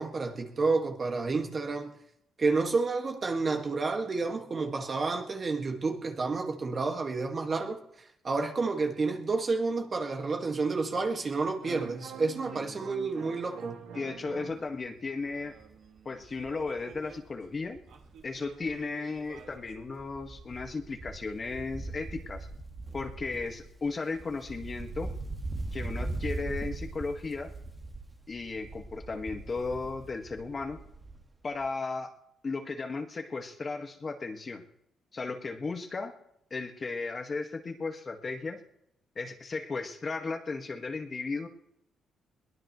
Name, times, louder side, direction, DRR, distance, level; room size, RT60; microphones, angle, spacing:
voice 1, 0.0-1.9 2.4-13.8, right 3 dB, 40° right, 2.0 m, -30 dB
sound 1, 11.4-14.7 15.1-17.2 17.8-19.7, right 8 dB, 80° right, 2.0 m, -47 dB
voice 2, 12.5-12.9 13.9-15.6 16.1-17.8 18.2-22.5 22.9-25.1 25.7-27.5 28.3-30.8 31.4-32.1 32.4-34.6 35.1-36.1 36.5-38.6 39.2-41.5, left 4 dB, 35° left, 1.8 m, -35 dB
Wind, 14.3-14.6 15.0-15.1 15.3-18.9 19.2-31.3 31.6-31.7, right 2 dB, 25° right, 1.7 m, -41 dB
22.0 x 18.0 x 3.2 m
cardioid pair, 90°, 0 cm